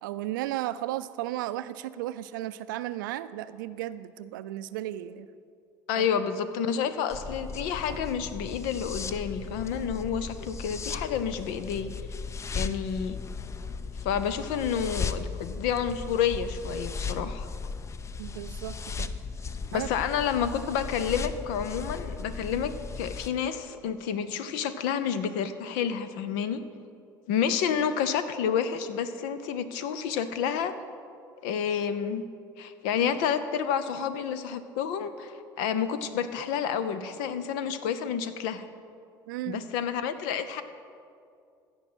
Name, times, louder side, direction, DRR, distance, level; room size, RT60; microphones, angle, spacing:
voice 1, 0.0-5.3 6.0-6.1 18.2-19.1 19.7-19.9 39.3-39.6, right 14 dB, 80° right, 14 dB, 0.4 m, -34 dB
voice 2, 5.9-11.9 12.5-13.2 14.0-17.5 19.7-26.6 27.3-30.8 31.4-32.2 32.6-38.7 39.4-40.6, left 7 dB, 75° left, 12 dB, 0.7 m, -29 dB
sound 1, 7.1-23.3, left 5 dB, 25° left, 0.5 m, -36 dB
15.5 x 5.2 x 6.2 m, 2.4 s
hypercardioid pair, 75°, 11 cm